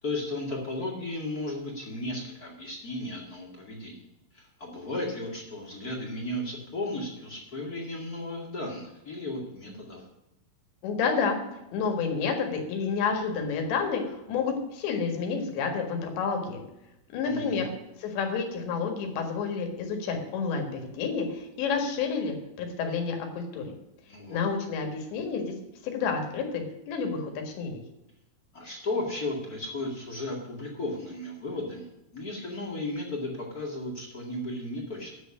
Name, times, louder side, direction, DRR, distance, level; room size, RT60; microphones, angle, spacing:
voice 1, 0.0-3.9 4.3-10.0 17.2-17.6 24.1-24.4 28.5-31.9 32.1-35.2, left 2 dB, 35° left, -2 dB, 1.4 m, -35 dB
voice 2, 10.8-11.4 11.7-16.6 17.1-17.7 18.0-23.7 24.3-25.5 25.9-27.8, left 5 dB, 85° left, 4 dB, 4.0 m, -29 dB
9.6 x 6.7 x 8.4 m, 0.91 s
omnidirectional pair, 5.0 m